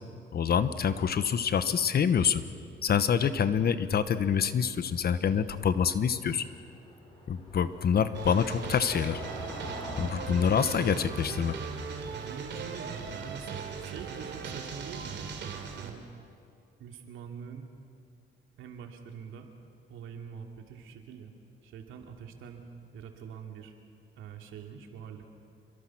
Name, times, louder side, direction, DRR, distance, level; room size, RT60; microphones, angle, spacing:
voice 1, 0.3-2.4 2.8-6.5 7.3-9.2 10.0-11.5, left 7 dB, 50° left, 12 dB, 1.2 m, -26 dB
Car passing by / Engine, 4.6-15.1, equal, 25° left, 6.3 m, -47 dB
sound 1, 8.1-15.9, right 5 dB, 65° right, 3.1 m, -39 dB
voice 2, 10.3-11.3 12.2-15.3 15.8-16.0 16.8-17.7 18.6-19.5 19.9-21.3 21.6-22.6 22.9-23.7 24.1-25.3, right 6 dB, 85° right, 3 dB, 2.7 m, -44 dB
27.5 x 23.0 x 6.1 m, 2.4 s
cardioid pair, 90°, 20 cm